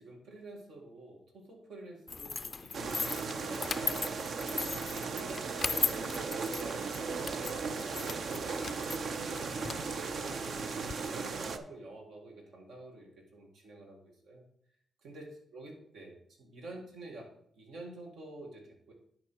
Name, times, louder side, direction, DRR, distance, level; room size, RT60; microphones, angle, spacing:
voice 1, 0.0-4.5 5.1-8.7 9.3-14.4 15.0-18.9, right 2 dB, 80° right, 0 dB, 2.0 m, -49 dB
sound 1, 2.1-10.9, left 5 dB, 45° left, 0.3 m, -38 dB
sound 2, 2.7-11.6, right 4 dB, 65° right, 0.7 m, -36 dB
10.5 x 4.9 x 4.6 m, 0.68 s
cardioid pair, 70°, 0 cm